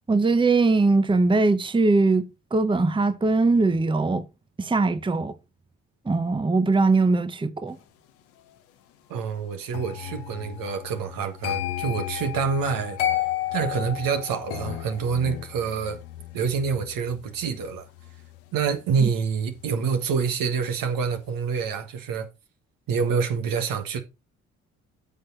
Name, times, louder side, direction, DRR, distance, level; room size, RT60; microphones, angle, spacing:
voice 1, 0.1-4.3 4.6-5.3 6.1-7.8 19.0-19.1, right 3 dB, 15° right, 0.8 m, -21 dB
voice 2, 9.1-13.0 13.5-16.0 16.3-17.9 18.5-22.3 22.9-24.0, right 6 dB, 70° right, 1.6 m, -27 dB
sound 1, 9.7-20.7 21.0-21.4, left 12 dB, 90° left, 1.1 m, -34 dB
9.3 x 6.2 x 4.1 m
hypercardioid pair, 50°, 35 cm